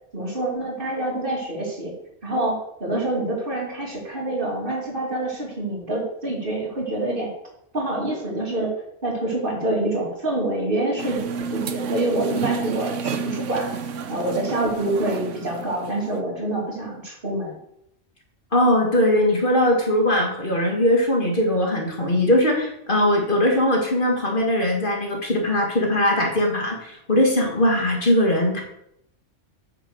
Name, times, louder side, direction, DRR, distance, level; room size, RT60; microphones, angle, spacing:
voice 1, 0.1-1.9 2.2-7.3 7.7-8.7 9.0-11.2 11.5-13.8 14.1-17.6, right 1 dB, 45° right, -1 dB, 2.8 m, -26 dB
sound 1, 11.0-16.2, right 6 dB, 90° right, 1.1 m, -31 dB
voice 2, 18.5-28.6, left 1 dB, 45° left, 0 dB, 2.0 m, -20 dB
9.3 x 5.7 x 6.4 m, 0.77 s
omnidirectional pair, 1.2 m